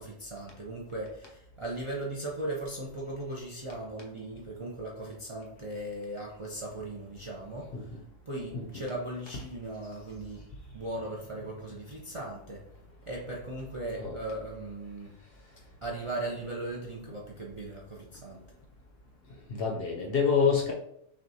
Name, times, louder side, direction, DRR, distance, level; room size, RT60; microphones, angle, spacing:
voice 1, 0.0-7.9 8.3-10.4 10.7-12.6 13.1-15.1 15.8-18.4, right 1 dB, 40° right, -3 dB, 0.4 m, -38 dB
voice 2, 19.5-20.7, left 6 dB, 60° left, 1 dB, 0.7 m, -26 dB
5.9 x 2.4 x 2.7 m, 0.74 s
omnidirectional pair, 1.3 m